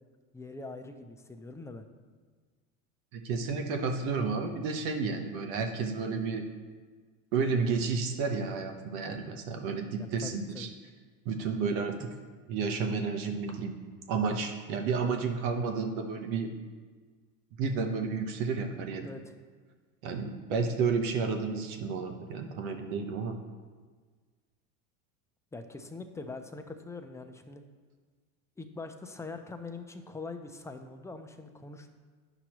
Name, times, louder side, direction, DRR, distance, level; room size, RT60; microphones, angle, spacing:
voice 1, 0.3-1.9 10.2-10.7 19.0-19.3 25.5-27.6 28.6-31.9, left 3 dB, 5° left, 6 dB, 0.5 m, -43 dB
voice 2, 3.1-6.4 7.3-10.7 11.2-12.1 12.5-13.8 14.1-16.5 17.6-19.1 20.0-23.4, right 5 dB, 65° right, 4 dB, 1.1 m, -31 dB
9.8 x 5.9 x 3.0 m, 1.5 s
hypercardioid pair, 95°, 45 cm